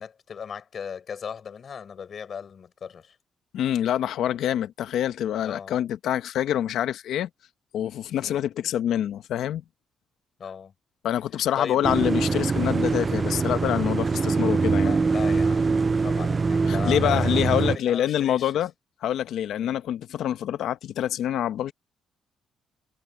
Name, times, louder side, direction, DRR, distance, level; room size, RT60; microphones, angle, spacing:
voice 1, 0.0-3.1 5.4-5.8 8.2-8.5 10.4-10.7 11.6-11.8 14.8-18.6 19.6-19.8, left 7 dB, 50° left, 6.6 m, -37 dB
voice 2, 3.5-7.3 7.7-9.6 11.0-14.9 16.7-18.7 19.0-21.7, left 11 dB, 75° left, 1.0 m, -26 dB
sound 1, 11.8-17.8, right 4 dB, 30° right, 0.4 m, -23 dB
cardioid pair, 90°, 0 cm